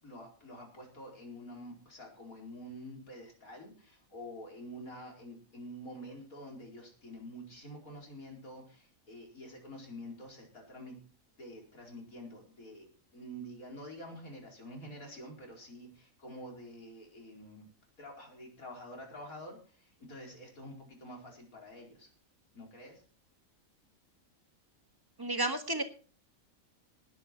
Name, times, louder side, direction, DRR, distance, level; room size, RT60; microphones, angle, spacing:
voice 1, 0.0-11.0 11.4-17.7 18.0-22.1 22.5-23.0, equal, 80° left, 1 dB, 5.0 m, -48 dB
voice 2, 25.2-25.8, right 2 dB, 15° right, 8 dB, 1.5 m, -31 dB
19.0 x 8.8 x 4.6 m, 0.39 s
omnidirectional pair, 1.5 m